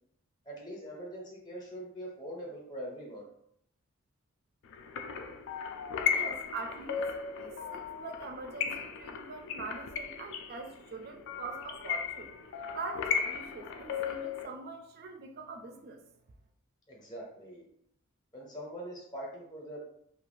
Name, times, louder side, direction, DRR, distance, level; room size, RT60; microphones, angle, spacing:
voice 1, 0.5-3.2 16.9-17.7 18.3-19.8, equal, 20° left, -2 dB, 0.7 m, -43 dB
sound 1, 4.7-14.5, left 7 dB, 60° left, 0.3 m, -36 dB
voice 2, 6.1-7.1 7.4-12.3 12.7-16.0, right 4 dB, 50° right, 4 dB, 0.4 m, -43 dB
2.4 x 2.3 x 3.1 m, 0.72 s
head